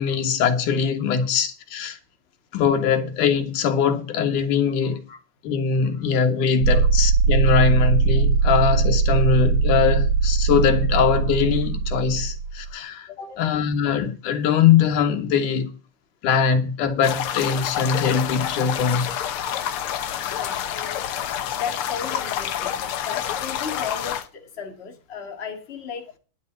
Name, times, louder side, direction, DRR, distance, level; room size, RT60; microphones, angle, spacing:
voice 1, 0.0-2.0 2.5-5.0 5.4-15.7 16.2-19.2, left 6 dB, 80° left, 3.0 m, -22 dB
voice 2, 4.8-5.2 6.7-6.9 8.4-8.5 13.3-13.4 19.1-19.2 20.3-21.0 21.5-22.7 23.0-26.2, left 7 dB, 25° left, 2.0 m, -35 dB
sound 1, 6.6-12.7, right 5 dB, 80° right, 2.7 m, -20 dB
sound 2, 17.0-24.3, left 10 dB, 65° left, 1.4 m, -28 dB
10.5 x 6.8 x 7.5 m
omnidirectional pair, 3.5 m